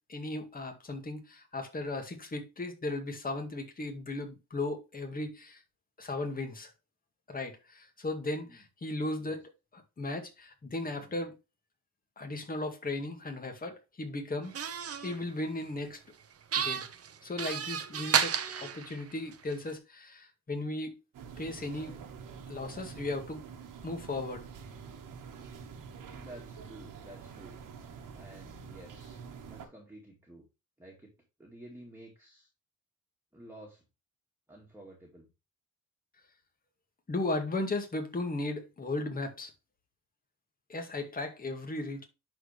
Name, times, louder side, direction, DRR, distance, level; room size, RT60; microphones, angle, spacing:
voice 1, 0.0-5.6 6.0-6.7 7.3-11.4 12.2-14.7 15.0-16.0 16.6-16.9 17.2-21.0 21.4-22.0 22.5-23.4 23.8-24.5 37.1-39.5 40.7-42.0, left 2 dB, 25° left, 2.1 m, -36 dB
sound 1, 14.5-15.2 16.5-19.5, right 8 dB, 50° right, 1.0 m, -31 dB
sound 2, 21.1-29.7, right 6 dB, 90° right, 1.8 m, -47 dB
voice 2, 26.1-27.6 28.1-29.2 29.5-30.5 30.8-31.1 31.4-32.5 33.3-33.8 34.5-35.3, right 1 dB, 5° right, 2.2 m, -51 dB
11.0 x 4.4 x 3.3 m
cardioid pair, 125°, 32 cm